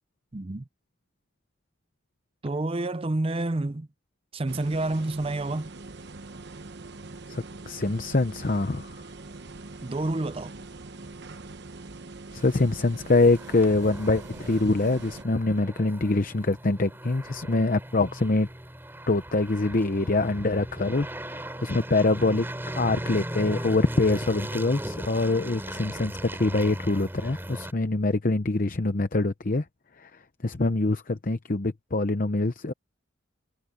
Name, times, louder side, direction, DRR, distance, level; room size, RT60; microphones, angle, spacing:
voice 1, 0.3-0.7 2.4-3.9 4.3-5.7 9.8-10.5, right 2 dB, 30° right, 0.6 m, -29 dB
sound 1, 4.5-15.2, right 3 dB, 55° right, 1.0 m, -43 dB
voice 2, 7.3-8.9 12.3-18.5 19.1-22.5 22.7-26.1 26.4-29.6 30.0-30.1 30.4-32.7, left 2 dB, 45° left, 0.8 m, -24 dB
sound 2, 12.4-27.7, right 1 dB, 10° right, 3.6 m, -38 dB
head